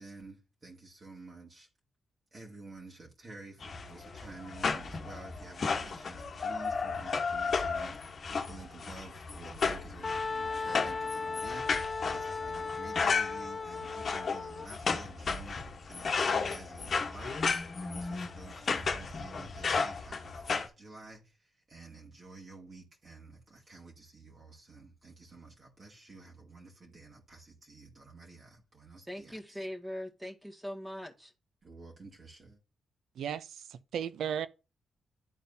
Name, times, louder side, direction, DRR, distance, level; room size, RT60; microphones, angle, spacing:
voice 1, 0.0-1.7 2.3-29.7 31.6-32.6, right 3 dB, 40° right, 2.1 m, -51 dB
sound 1, 3.6-20.7, left 5 dB, 50° left, 1.1 m, -34 dB
Wind instrument woodwind instrument, 10.0-14.7, left 4 dB, 30° left, 0.4 m, -36 dB
voice 2, 29.1-31.3, equal, 15° right, 1.7 m, -41 dB
voice 3, 33.2-34.5, right 8 dB, 80° right, 0.5 m, -35 dB
11.5 x 4.1 x 2.7 m
cardioid pair, 75°, 0 cm